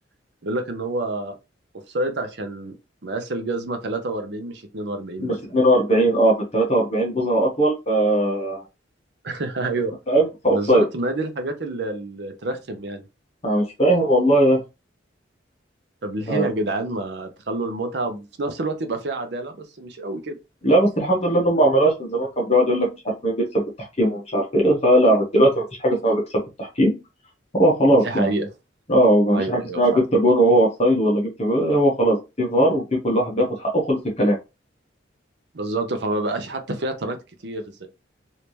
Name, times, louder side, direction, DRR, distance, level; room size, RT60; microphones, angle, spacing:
voice 1, 0.4-1.3 1.9-2.7 3.0-5.4 9.2-10.0 10.5-13.0 16.0-20.4 27.9-28.5 29.3-30.0 35.5-37.2 37.4-37.9, right 2 dB, 60° right, 0.7 m, -28 dB
voice 2, 5.2-8.6 10.1-10.8 13.4-14.6 16.3-16.5 20.6-23.6 24.0-26.2 26.6-26.9 27.5-28.3 28.9-34.4, right 1 dB, 35° left, 1.1 m, -19 dB
3.3 x 2.8 x 3.1 m
head